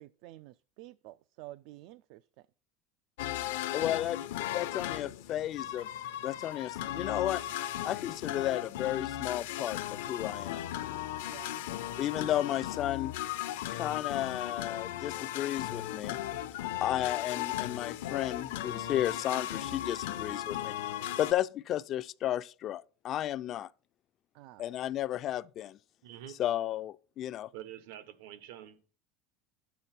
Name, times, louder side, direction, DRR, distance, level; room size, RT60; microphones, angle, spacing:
voice 1, 0.0-2.3 11.2-11.7 24.3-24.6, right 17 dB, 65° right, 0.3 m, -50 dB
sound 1, 3.2-21.3, left 13 dB, 90° left, 0.7 m, -36 dB
voice 2, 3.7-5.9 6.2-7.4 7.8-10.6 12.0-13.1 13.7-16.2 16.8-20.8 21.2-23.7 24.6-25.8 26.4-27.5, left 12 dB, 40° left, 0.3 m, -33 dB
voice 3, 26.0-26.4 27.5-28.9, right 11 dB, 80° right, 1.1 m, -46 dB
9.6 x 8.2 x 4.3 m
supercardioid pair, 140°, 0 cm